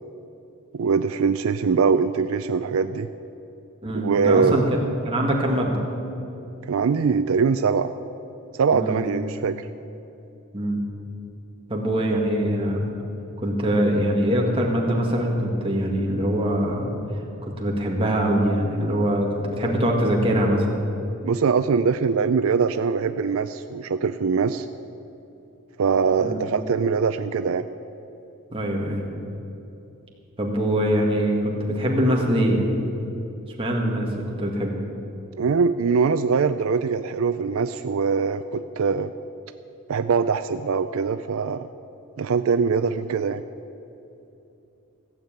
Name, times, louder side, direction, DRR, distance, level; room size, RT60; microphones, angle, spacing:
voice 1, 0.7-3.1 4.0-4.7 6.7-7.9 8.6-9.7 21.2-24.7 25.8-27.7 35.4-39.1 39.9-41.7 42.2-43.4, right 5 dB, 70° right, 11 dB, 0.4 m, -22 dB
voice 2, 3.8-4.6 5.0-5.8 8.7-9.0 10.5-10.8 11.7-12.8 13.4-20.7 26.2-26.4 28.5-29.0 30.4-32.7 33.6-34.8, equal, 25° right, -1 dB, 1.9 m, -23 dB
16.0 x 7.3 x 8.9 m, 2.8 s
head